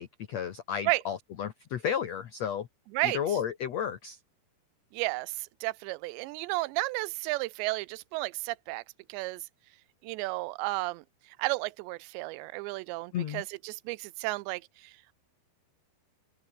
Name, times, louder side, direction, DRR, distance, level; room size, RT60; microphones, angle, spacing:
voice 1, 0.0-2.7 3.0-4.2 13.1-13.4, left 8 dB, 90° left, 1.4 m, -33 dB
voice 2, 4.9-8.8 9.1-9.4 10.0-11.0 11.4-14.9, right 22 dB, 85° right, 2.8 m, -33 dB
open air
omnidirectional pair, 5.1 m